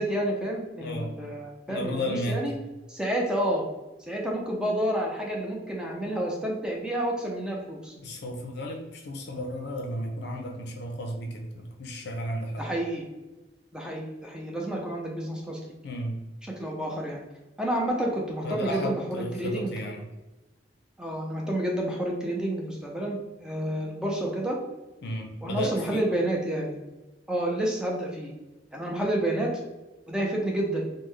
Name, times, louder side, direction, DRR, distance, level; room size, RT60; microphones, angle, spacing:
voice 1, 0.0-2.0 2.3-2.5 2.9-3.7 4.1-7.9 12.6-13.1 13.7-15.6 16.6-17.2 17.6-19.7 21.0-24.6 25.4-26.8 27.3-28.3 28.7-29.5 30.1-30.9, right 1 dB, 5° right, -1 dB, 0.5 m, -29 dB
voice 2, 0.8-1.1 1.7-2.5 8.0-12.7 15.8-16.2 18.4-20.1 25.0-26.1, equal, 60° left, 3 dB, 0.5 m, -33 dB
3.6 x 2.1 x 3.2 m, 1.1 s
head